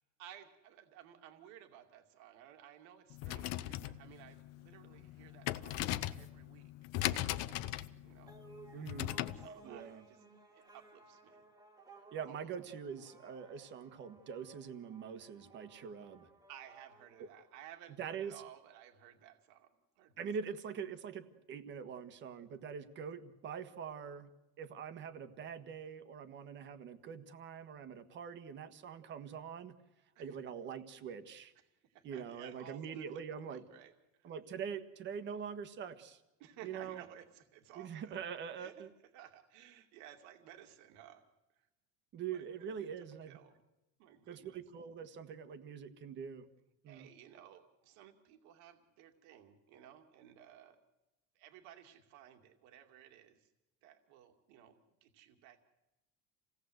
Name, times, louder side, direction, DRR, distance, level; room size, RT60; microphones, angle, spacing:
voice 1, 0.0-5.8 6.1-6.7 7.0-8.3 9.4-10.2 10.5-11.4 12.3-12.5 16.5-19.7 20.0-20.3 30.1-30.4 31.9-34.3 36.4-38.2 38.6-38.8 39.1-41.3 42.3-43.6 44.0-44.6 46.9-50.8 51.3-53.5 53.8-55.6, right 10 dB, 70° right, 5 dB, 2.4 m, -57 dB
sound 1, 3.1-9.5, left 14 dB, 55° left, 0.9 m, -39 dB
sound 2, 8.3-18.1, right 3 dB, 10° right, 1.9 m, -59 dB
voice 2, 8.7-9.2 9.6-10.0 12.1-16.3 17.2-17.3 18.0-18.3 20.2-29.7 30.2-31.5 32.0-33.6 34.2-36.2 36.6-37.0 37.7-38.9 42.1-43.4 44.3-46.5 46.8-47.1, right 7 dB, 35° right, 11 dB, 1.5 m, -44 dB
28.0 x 17.5 x 8.0 m, 0.99 s
cardioid pair, 170°, 30 cm